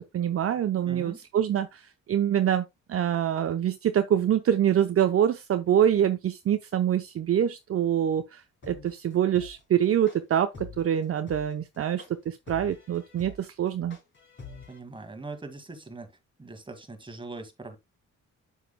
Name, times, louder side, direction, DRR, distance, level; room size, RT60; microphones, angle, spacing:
voice 1, 0.0-14.0, right 10 dB, 50° right, 0.7 m, -25 dB
voice 2, 0.8-1.2 14.7-16.1 16.4-17.8, right 3 dB, 15° right, 1.9 m, -41 dB
sound 1, 8.6-14.8, left 5 dB, 40° left, 3.8 m, -45 dB
7.8 x 7.4 x 2.2 m
cardioid pair, 90°, 30 cm